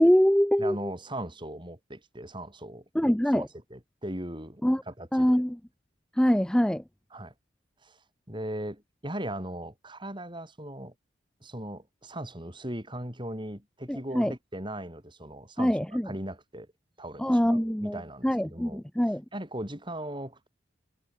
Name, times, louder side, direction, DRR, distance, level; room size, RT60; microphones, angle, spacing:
voice 1, 0.0-0.9 2.9-3.5 4.6-4.8 5.1-5.6 6.2-6.8 13.9-14.3 15.6-16.1 17.2-19.2, equal, 5° left, 0.4 m, -24 dB
voice 2, 0.6-5.4 7.1-7.3 7.8-8.0 8.3-10.9 11.4-16.7 17.0-18.8 19.3-20.5, right 1 dB, 25° right, 8.0 m, -38 dB
head